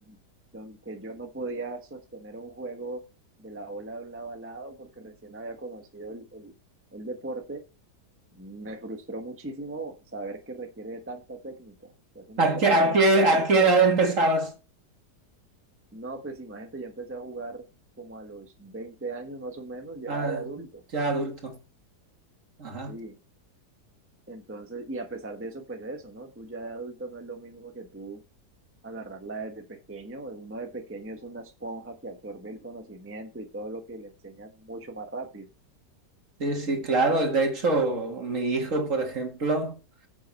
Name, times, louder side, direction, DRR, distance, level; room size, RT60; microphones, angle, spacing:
voice 1, 0.5-3.0 3.4-6.5 6.9-7.6 8.3-13.7 15.9-17.7 18.0-20.8 22.9-23.2 24.3-28.2 28.8-35.5, right 2 dB, 10° right, 1.0 m, -39 dB
voice 2, 12.4-14.5 20.1-20.4 20.9-21.6 22.6-23.0 36.4-39.8, right 2 dB, 50° right, 2.1 m, -23 dB
9.8 x 7.5 x 4.1 m
omnidirectional pair, 1.8 m